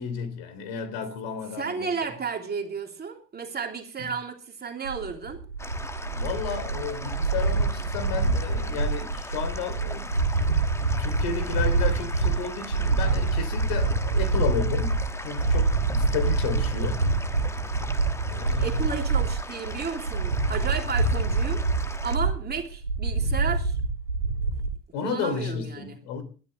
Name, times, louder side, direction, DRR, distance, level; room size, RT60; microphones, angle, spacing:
voice 1, 0.0-2.1 4.0-4.1 6.1-10.1 10.7-17.1 18.3-18.9 24.9-26.2, left 6 dB, 50° left, 3.3 m, -33 dB
voice 2, 1.6-5.4 18.6-21.6 22.0-23.8 25.0-26.0, right 5 dB, 20° right, 3.0 m, -33 dB
sound 1, 4.8-24.7, right 3 dB, 90° right, 2.8 m, -26 dB
sound 2, 5.6-22.2, left 2 dB, 5° left, 1.2 m, -40 dB
21.0 x 13.5 x 3.3 m
figure-of-eight pair, 75°, 48 cm